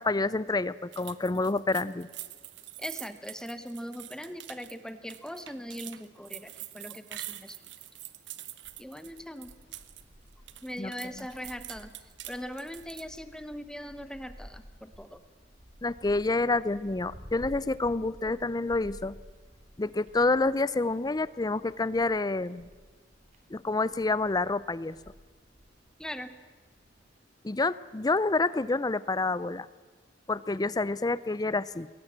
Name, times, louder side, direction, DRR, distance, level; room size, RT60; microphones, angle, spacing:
voice 1, 0.0-2.1 10.8-11.3 15.8-19.2 19.8-22.7 23.5-25.0 27.4-29.7 30.3-31.9, left 3 dB, 20° left, 19 dB, 0.5 m, -28 dB
sound 1, 0.9-10.0 10.3-13.2, right 14 dB, 65° right, 1.0 m, -45 dB
voice 2, 2.8-7.6 8.8-9.5 10.6-11.9 12.3-15.2 26.0-26.3, equal, 5° left, 11 dB, 1.0 m, -40 dB
sound 2, 8.6-27.2, equal, 40° right, 3.3 m, -53 dB
21.5 x 18.5 x 7.4 m, 1.4 s
head